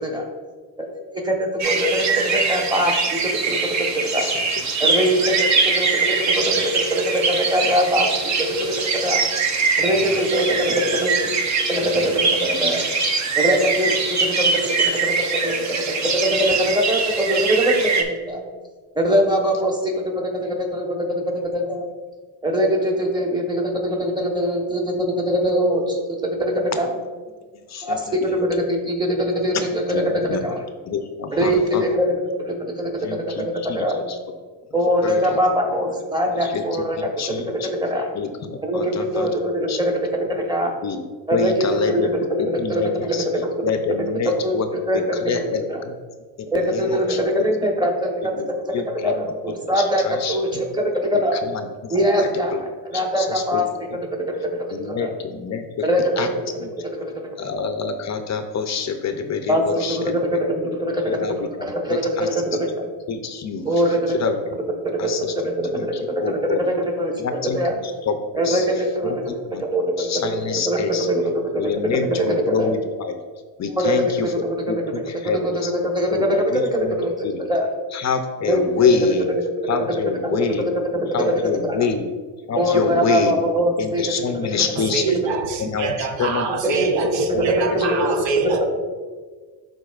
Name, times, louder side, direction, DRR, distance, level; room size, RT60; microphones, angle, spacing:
voice 1, 0.9-3.2 3.5-3.6 4.1-4.3 4.8-5.5 5.8-9.2 9.8-11.1 11.7-12.8 13.4-15.1 15.4-15.5 16.2-18.4 18.9-21.2 21.5-21.9 22.4-26.9 27.8-29.8 30.4-30.6 31.3-32.1 32.4-34.0 34.7-37.1 37.8-38.0 38.6-39.9 40.3-40.7 41.3-42.0 42.4-42.8 43.3-43.5 44.2-45.8 46.5-48.7 49.0-51.4 51.9-52.6 52.9-53.6 54.4-55.1 55.8-56.4 56.8-57.4 59.5-62.7 63.6-64.1 64.8-67.7 68.3-69.1 69.7-70.1 70.5-70.8 71.1-71.6 72.2-72.7 73.8-74.6 75.2-77.1 77.5-77.7 78.5-78.9 79.3-79.4 80.2-80.5 80.9-81.1 81.6-81.8 82.5-84.4 86.7-88.1 88.4-88.6, equal, 10° right, 1 dB, 1.0 m, -22 dB
sound 1, 1.6-18.0, right 4 dB, 40° right, 0.8 m, -22 dB
voice 2, 9.8-10.2 11.8-12.1 27.5-28.4 29.5-30.4 30.9-31.8 33.0-34.2 35.0-35.4 36.4-36.6 37.2-37.7 38.1-39.3 39.7-39.8 40.8-41.0 41.3-42.1 42.4-43.3 43.6-44.7 45.2-46.0 46.5-47.5 48.2-48.5 48.7-49.3 49.7-50.6 51.1-52.6 52.9-53.6 54.7-55.8 56.2-56.3 56.6-56.7 57.4-60.2 61.1-61.5 61.9-62.6 63.1-64.4 65.0-65.3 65.7-66.6 67.2-68.7 69.0-69.6 70.0-71.1 71.6-73.1 73.6-75.7 76.1-77.0 77.2-77.4 77.9-79.3 79.7-80.7 81.1-82.1 82.5-83.4 83.8-85.2 85.6-86.9 87.3-88.1, left 5 dB, 40° left, 7 dB, 0.5 m, -27 dB
voice 3, 84.9-88.6, right 5 dB, 80° right, 6 dB, 0.9 m, -25 dB
11.5 x 3.9 x 2.4 m, 1.5 s
cardioid pair, 115°, 42 cm